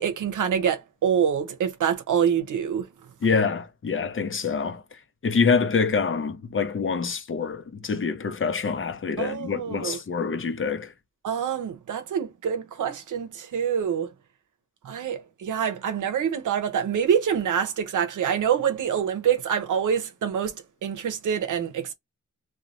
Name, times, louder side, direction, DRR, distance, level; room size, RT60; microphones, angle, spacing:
voice 1, 0.0-2.9 9.2-10.0 11.2-14.1 14.8-21.9, right 8 dB, 80° right, 0.7 m, -26 dB
voice 2, 3.2-4.8 5.2-10.9, left 5 dB, 45° left, 0.7 m, -26 dB
3.0 x 2.3 x 2.5 m
cardioid pair, 80°, 30 cm